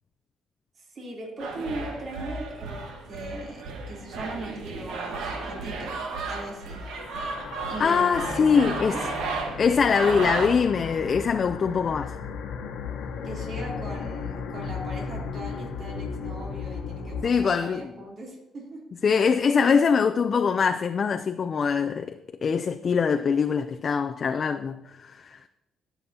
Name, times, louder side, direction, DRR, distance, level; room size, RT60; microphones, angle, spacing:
voice 1, 0.7-5.9 6.2-6.8 7.6-9.1 13.2-18.8, right 1 dB, 50° right, 3.3 m, -39 dB
sound 1, 1.4-10.6, right 3 dB, 90° right, 1.4 m, -34 dB
sound 2, 6.7-17.3, left 6 dB, 85° left, 1.1 m, -35 dB
voice 2, 7.8-9.0 9.6-12.2 17.2-17.9 19.0-25.4, left 6 dB, 45° left, 0.4 m, -23 dB
sound 3, 8.2-14.5, right 2 dB, 15° right, 3.1 m, -47 dB
18.0 x 7.0 x 2.9 m
cardioid pair, 90°, 0 cm